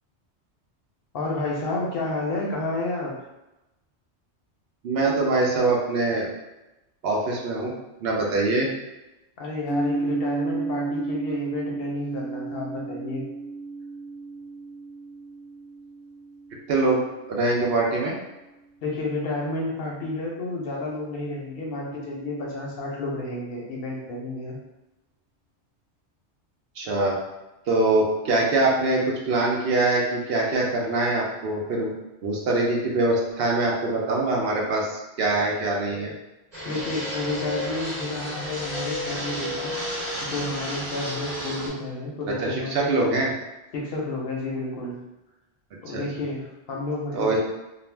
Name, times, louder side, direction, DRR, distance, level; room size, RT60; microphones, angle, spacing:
voice 1, 1.1-3.2 9.4-13.2 18.8-24.6 36.6-39.8 40.2-43.0 43.7-45.0 45.8-47.4, left 2 dB, 65° left, -2 dB, 0.7 m, -30 dB
voice 2, 4.8-6.3 7.0-7.7 8.0-8.7 16.7-17.0 17.3-18.1 26.8-27.2 27.7-31.9 32.2-36.1 42.4-43.3 45.9-46.0 47.1-47.4, right 2 dB, 65° right, -2 dB, 0.7 m, -23 dB
sound 1, 9.7-17.5, right 3 dB, 15° left, 0.5 m, -32 dB
Fixed-wing aircraft airplane, 36.5-41.7, equal, 40° right, 1.0 m, -32 dB
2.4 x 2.0 x 3.2 m, 0.98 s
omnidirectional pair, 1.2 m